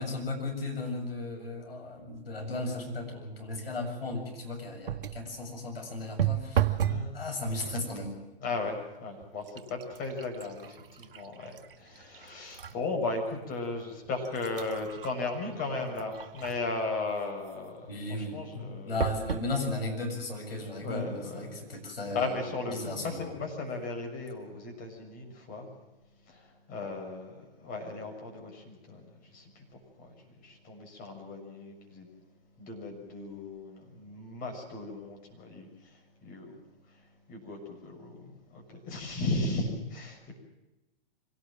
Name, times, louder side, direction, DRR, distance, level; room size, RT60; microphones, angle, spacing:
voice 1, 0.0-6.8 7.1-8.2 17.9-23.3, left 2 dB, 80° left, 3 dB, 7.6 m, -36 dB
sound 1, 4.8-5.3 6.2-7.1 7.4-7.9 8.7-8.8 9.2-12.8 13.3-13.4 14.1-16.8 19.0-19.5 20.2-20.3 20.5-20.6, right 10 dB, 65° right, 1.4 m, -34 dB
voice 2, 8.4-17.9 18.3-19.0 20.8-21.6 22.1-25.7 26.3-29.0 29.3-30.1 30.4-32.1 32.6-35.7 36.2-36.5 37.3-40.3, left 3 dB, 30° left, 2 dB, 6.7 m, -36 dB
25.0 x 18.0 x 7.6 m, 1.0 s
figure-of-eight pair, 120°, 29 cm